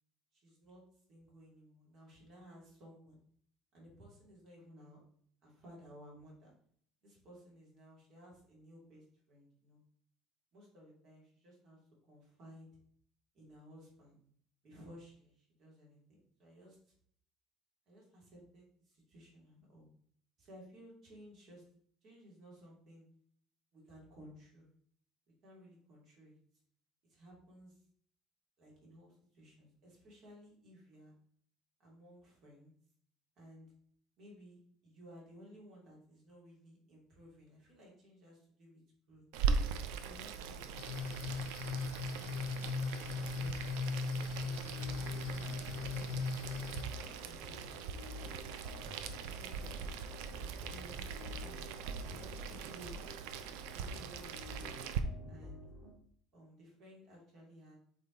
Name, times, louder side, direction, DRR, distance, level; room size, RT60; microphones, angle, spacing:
voice 1, 0.3-0.8 1.1-3.2 3.7-5.0 5.4-6.5 7.0-9.8 10.5-11.8 12.1-12.7 13.3-14.2 14.6-16.8 17.9-19.9 20.4-21.6 22.0-23.1 23.7-24.7 25.4-26.4 27.1-27.8 28.6-31.1 31.8-32.7 33.4-33.7 34.2-38.8 39.1-39.2 40.0-41.2 44.2-46.5 47.2-47.7 49.2-49.9 50.4-51.7 52.1-52.9 53.7-54.8 55.3-55.6 56.3-57.8, equal, 35° right, -3 dB, 2.7 m, -57 dB
Boiling, 39.3-55.0, right 6 dB, 80° right, 0.6 m, -41 dB
sound 1, 40.8-46.8, left 4 dB, 90° left, 0.6 m, -38 dB
sound 2, 44.4-55.9, left 1 dB, 10° right, 2.5 m, -51 dB
8.1 x 3.5 x 3.9 m, 0.62 s
cardioid pair, 180°, 0 cm